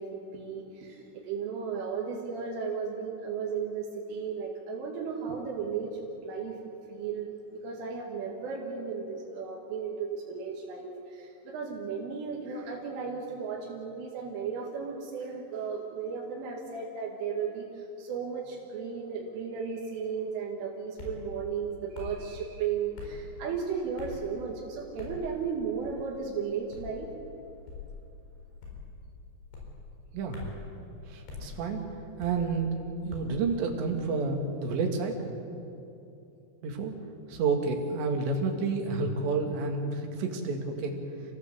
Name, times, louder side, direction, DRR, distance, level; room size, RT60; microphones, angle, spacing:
voice 1, 0.0-27.1, right 6 dB, 85° right, -2 dB, 4.6 m, -35 dB
sound 1, 21.0-21.2 21.9-22.2 23.0-23.2 24.0-24.3 25.0-25.2 25.8-26.1 26.7-27.0 27.7-27.9 28.6-28.9 29.5-29.8 30.3-30.6 31.3-31.5 32.2-32.5 33.1-33.4, left 4 dB, 65° left, 7.0 m, -42 dB
voice 2, 31.1-31.8 32.2-32.7 33.1-35.2 36.6-36.9 37.3-41.0, right 4 dB, 70° right, 3 dB, 4.3 m, -30 dB
28.5 x 17.0 x 7.9 m, 2.7 s
omnidirectional pair, 5.5 m